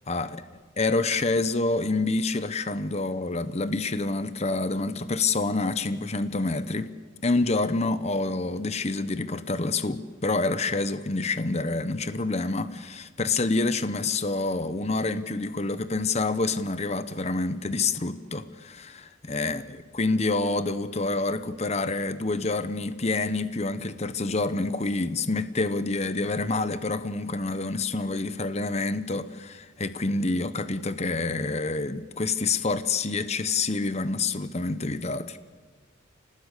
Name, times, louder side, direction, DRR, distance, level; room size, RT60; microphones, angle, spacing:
voice 1, 0.8-6.9 7.2-19.6 19.9-35.4, left 3 dB, 35° left, 12 dB, 1.0 m, -27 dB
27.0 x 19.0 x 8.4 m, 1.4 s
head